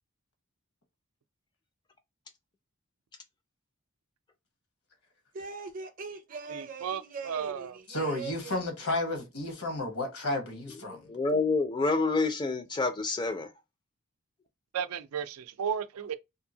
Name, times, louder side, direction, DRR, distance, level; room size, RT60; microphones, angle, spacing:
voice 1, 5.3-8.6, right 4 dB, 40° right, 0.5 m, -41 dB
voice 2, 6.5-7.8 14.7-16.1, right 7 dB, 90° right, 0.4 m, -34 dB
voice 3, 7.9-11.1, left 1 dB, 80° left, 1.0 m, -32 dB
voice 4, 10.9-13.5, left 3 dB, 20° left, 0.3 m, -28 dB
2.7 x 2.7 x 2.7 m
head